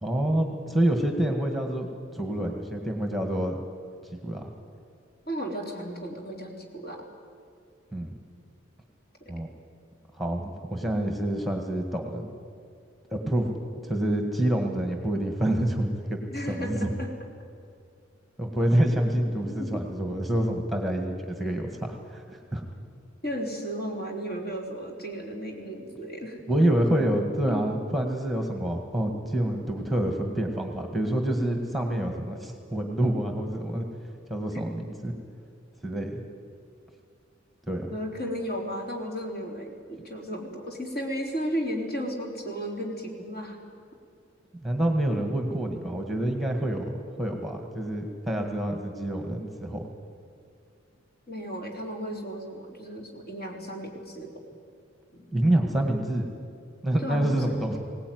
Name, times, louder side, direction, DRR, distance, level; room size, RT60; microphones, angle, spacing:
voice 1, 0.0-3.6 4.1-4.5 7.9-8.1 9.3-9.5 10.2-12.4 13.1-13.5 13.8-16.2 16.5-16.9 18.4-22.2 22.5-22.7 26.5-33.9 34.3-35.1 35.8-36.2 37.7-37.9 44.6-46.9 47.2-49.9 55.3-56.3 56.8-57.8, right 1 dB, ahead, 3 dB, 1.8 m, -27 dB
voice 2, 5.3-7.0 9.2-9.3 16.3-17.1 19.6-19.8 23.2-26.4 27.5-27.6 37.9-43.6 51.3-54.3 55.1-55.3 57.0-57.8, equal, 55° left, 0 dB, 3.9 m, -34 dB
22.0 x 18.0 x 9.5 m, 2.3 s
head